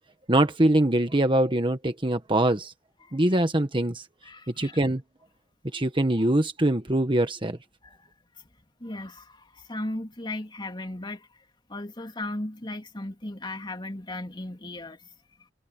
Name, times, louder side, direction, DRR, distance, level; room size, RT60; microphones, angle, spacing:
voice 1, 0.3-2.7 3.1-4.0 4.6-5.0 5.7-7.6, right 1 dB, 25° right, 1.4 m, -23 dB
voice 2, 3.0-3.4 4.2-4.8 7.8-8.1 8.4-8.5 8.8-11.3 11.7-15.1, left 1 dB, 25° left, 3.2 m, -36 dB
head